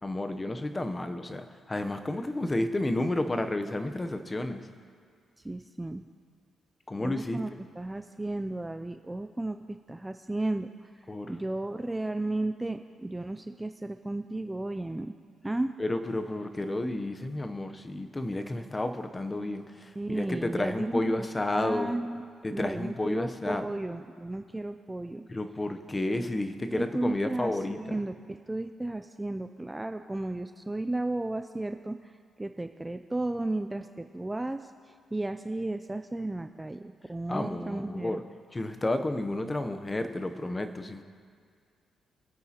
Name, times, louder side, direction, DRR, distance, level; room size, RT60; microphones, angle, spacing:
voice 1, 0.0-4.7 6.9-7.4 11.1-11.4 15.8-21.9 22.4-23.6 25.3-27.9 37.3-38.2 38.5-41.0, left 1 dB, 20° left, 8 dB, 0.7 m, -31 dB
voice 2, 5.4-6.0 7.0-15.1 15.4-15.7 20.0-21.3 21.5-22.3 22.5-25.3 26.7-38.2, right 2 dB, 10° right, 8 dB, 0.3 m, -34 dB
24.5 x 8.7 x 2.9 m, 2.1 s
cardioid pair, 125°, 0 cm